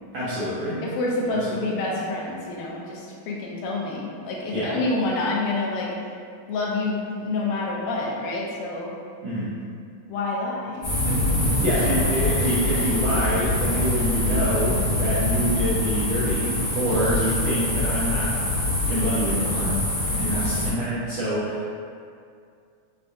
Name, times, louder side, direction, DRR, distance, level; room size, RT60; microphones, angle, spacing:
voice 1, 0.1-0.8 1.3-1.8 4.5-4.8 9.2-9.5 11.6-18.4 18.8-19.8 20.2-21.7, equal, 80° right, -10 dB, 1.5 m, -26 dB
voice 2, 0.8-5.9 6.5-8.9 10.1-11.2 20.2-20.5, left 2 dB, 85° left, -3 dB, 2.2 m, -28 dB
sound 1, 10.8-20.7, left 1 dB, 55° left, 1.3 m, -24 dB
6.5 x 2.6 x 2.3 m, 2.3 s
omnidirectional pair, 3.8 m